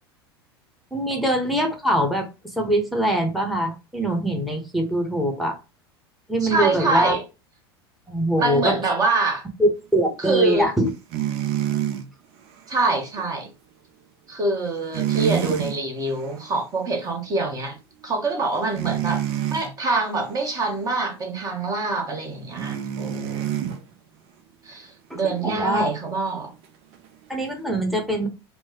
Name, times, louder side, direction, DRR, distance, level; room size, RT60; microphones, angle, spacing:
voice 1, 0.9-5.6 6.3-7.2 8.1-8.7 9.6-10.9 25.1-25.9 27.3-28.3, right 1 dB, ahead, 0.9 m, -23 dB
voice 2, 6.4-7.2 8.4-9.5 10.2-10.7 12.7-13.5 14.3-17.8 18.0-19.2 19.5-23.5 24.6-26.5, right 3 dB, 25° right, 1.0 m, -25 dB
sound 1, 11.1-12.0 14.9-15.8 16.2-16.4 18.8-19.7 22.6-23.8 26.9-27.0, right 11 dB, 45° right, 0.6 m, -26 dB
4.6 x 2.1 x 2.9 m
figure-of-eight pair, 80°, 13 cm